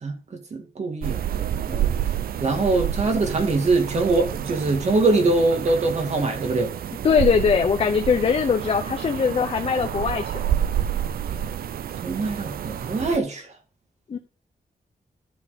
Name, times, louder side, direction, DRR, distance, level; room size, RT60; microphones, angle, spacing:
voice 1, 0.0-1.9 2.4-6.7 12.0-13.5, right 3 dB, 50° right, 2.2 m, -23 dB
sound 1, 1.0-13.2, right 10 dB, 90° right, 0.5 m, -29 dB
voice 2, 7.0-10.5 14.1-14.2, left 6 dB, 40° left, 0.8 m, -21 dB
11.5 x 4.5 x 5.3 m
wide cardioid pair, 150°, 15 cm